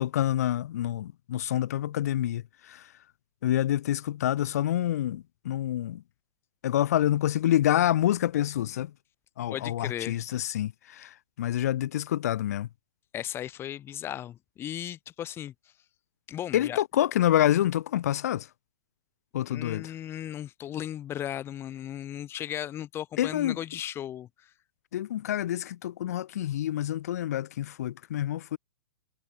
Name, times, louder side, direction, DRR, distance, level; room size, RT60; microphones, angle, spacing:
voice 1, 0.0-2.9 3.4-6.0 6.6-8.9 9.4-12.7 16.5-18.5 19.3-19.9 23.2-23.6 24.9-28.6, left 12 dB, 60° left, 1.8 m, -27 dB
voice 2, 9.5-10.2 13.1-15.5 16.3-16.8 19.5-24.5, left 11 dB, 25° left, 3.1 m, -36 dB
hypercardioid pair, 120°, 9 cm